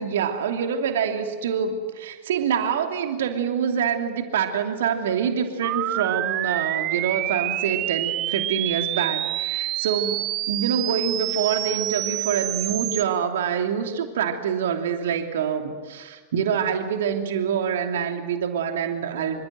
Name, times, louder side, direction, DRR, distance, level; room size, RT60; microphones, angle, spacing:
voice 1, 0.0-10.2 10.5-19.4, right 7 dB, 60° right, 5 dB, 2.9 m, -26 dB
sound 1, 5.6-13.0, right 15 dB, 35° right, 0.8 m, -27 dB
28.0 x 25.5 x 7.8 m, 1.5 s
figure-of-eight pair, 90°, 0 cm